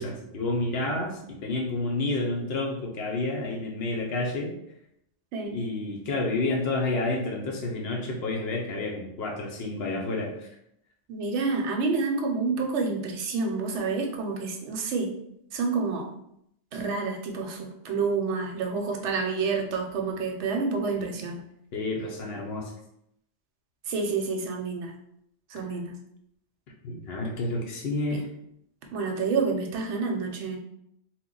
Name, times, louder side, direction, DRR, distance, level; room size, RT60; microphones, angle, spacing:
voice 1, 0.0-4.6 5.5-10.5 21.7-22.7 26.8-28.3, left 2 dB, 60° left, 1 dB, 0.8 m, -30 dB
voice 2, 11.1-15.1 15.5-16.1 16.7-21.4 23.9-24.9 25.5-25.9 28.1-28.2 28.9-30.6, right 4 dB, 70° right, 3 dB, 0.9 m, -28 dB
2.9 x 2.1 x 3.7 m, 0.76 s
omnidirectional pair, 1.3 m